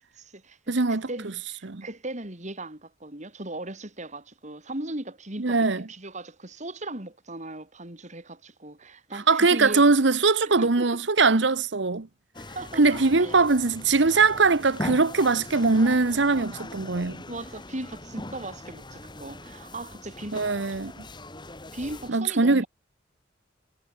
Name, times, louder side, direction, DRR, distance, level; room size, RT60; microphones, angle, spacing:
voice 1, 0.2-9.8 10.5-11.0 12.6-13.5 17.3-20.7 21.7-22.7, right 2 dB, 40° right, 3.6 m, -38 dB
voice 2, 0.7-1.1 1.6-1.8 5.4-5.8 9.3-12.1 12.8-17.2 20.3-21.0 22.1-22.6, right 3 dB, 65° right, 1.0 m, -21 dB
sound 1, 12.3-22.1, left 1 dB, 25° left, 4.0 m, -40 dB
head